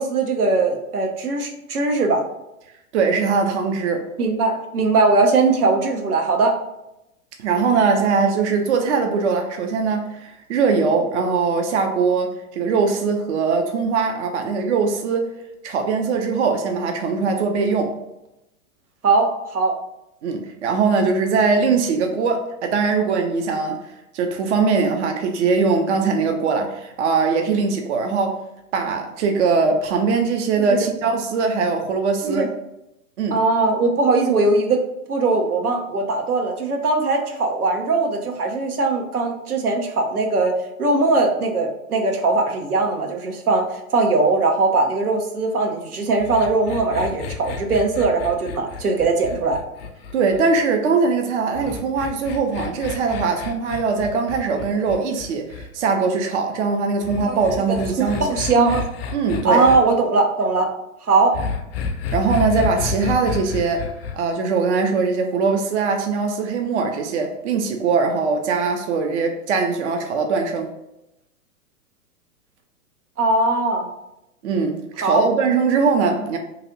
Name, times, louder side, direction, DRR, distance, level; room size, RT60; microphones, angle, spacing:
voice 1, 0.0-2.2 4.2-6.6 19.0-19.7 30.7-30.8 32.2-32.5 33.3-34.8 35.1-49.6 57.2-57.4 58.0-58.8 59.4-60.7 61.0-61.3 73.2-73.9 75.0-75.2, right 3 dB, 80° right, 0.9 m, -20 dB
voice 2, 2.9-4.0 7.4-15.3 15.6-17.9 20.2-23.8 24.1-28.4 28.7-32.5 33.2-33.4 50.1-58.3 59.1-59.7 62.1-63.9 64.1-70.7 74.4-76.4, right 4 dB, 50° right, 0.6 m, -21 dB
sound 1, 46.2-50.6 51.6-55.7 57.0-59.8 61.3-64.2, left 6 dB, 45° left, 0.5 m, -30 dB
3.1 x 2.9 x 3.8 m
figure-of-eight pair, 105°, 44 cm